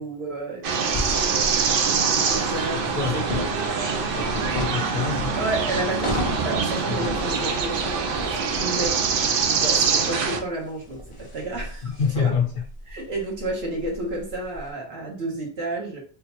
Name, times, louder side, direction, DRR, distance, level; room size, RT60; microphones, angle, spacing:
voice 1, 0.0-3.1 3.3-3.4 5.4-9.0 9.5-12.3 12.9-16.0, right 2 dB, 85° right, -2 dB, 1.4 m, -31 dB
sound 1, 0.6-10.4, right 5 dB, 65° right, 0.7 m, -24 dB
sound 2, 0.9-14.6, left 1 dB, 35° left, 0.6 m, -35 dB
voice 2, 2.7-5.4 6.9-7.1 11.8-12.6, left 6 dB, 65° left, 0 dB, 0.8 m, -28 dB
3.6 x 2.4 x 2.9 m, 0.41 s
omnidirectional pair, 1.1 m